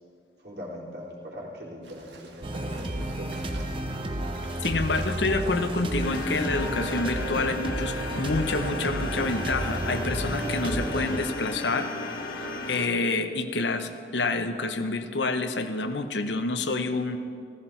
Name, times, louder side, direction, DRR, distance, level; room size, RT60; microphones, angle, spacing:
voice 1, 0.4-3.5, equal, 65° right, -5 dB, 3.5 m, -41 dB
sound 1, 1.8-7.3, right 3 dB, 80° right, 1.7 m, -48 dB
sound 2, 2.4-12.6, right 1 dB, 30° right, 0.9 m, -32 dB
voice 2, 4.6-11.9 12.3-17.2, left 3 dB, 80° left, 8 dB, 0.9 m, -28 dB
sound 3, 6.0-12.9, left 3 dB, 50° left, 1.1 m, -35 dB
15.5 x 14.0 x 4.5 m, 2.3 s
head